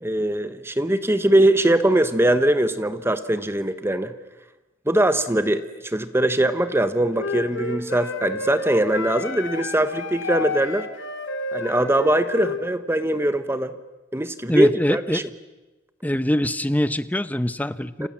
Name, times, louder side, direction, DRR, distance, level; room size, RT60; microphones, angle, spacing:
voice 1, 0.0-4.1 4.9-10.9 11.5-13.7 14.1-15.2 18.0-18.1, right 1 dB, 10° right, 11 dB, 1.0 m, -21 dB
Wind instrument woodwind instrument, 7.1-12.6, left 3 dB, 75° left, 3.4 m, -31 dB
voice 2, 14.5-15.2 16.0-18.1, equal, 10° left, 14 dB, 0.9 m, -23 dB
29.5 x 27.5 x 7.4 m, 1.1 s
head